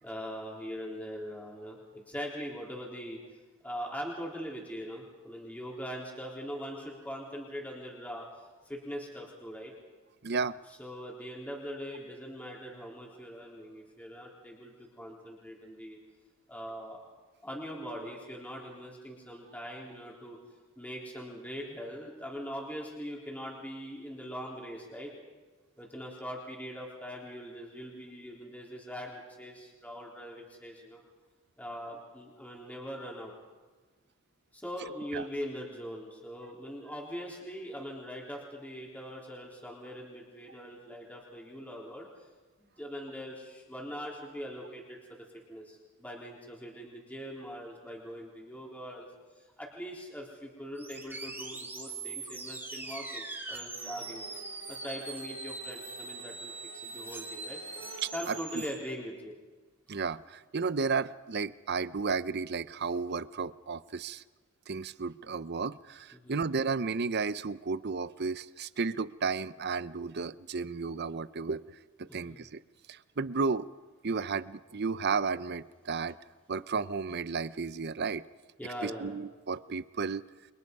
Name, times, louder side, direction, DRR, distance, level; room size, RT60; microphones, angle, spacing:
voice 1, 0.0-8.3 8.7-9.7 10.8-16.0 16.5-17.0 17.4-20.4 20.8-25.1 25.8-31.0 31.6-33.3 34.5-42.1 42.6-49.1 49.4-54.3 54.7-56.5 56.8-57.6 58.1-59.4 66.1-66.4 72.0-72.4 78.6-79.1, equal, 5° left, -2 dB, 4.0 m, -42 dB
voice 2, 10.2-10.6 35.1-35.2 58.0-58.6 59.9-64.2 64.7-71.6 72.0-72.6 72.9-73.7 74.0-76.2 76.5-78.2 78.8-80.2, right 4 dB, 50° right, 16 dB, 0.7 m, -33 dB
sound 1, 50.8-58.7, right 3 dB, 10° right, 3.5 m, -42 dB
sound 2, 53.7-58.6, right 5 dB, 80° right, 1.5 m, -49 dB
29.5 x 24.0 x 5.5 m, 1.3 s
head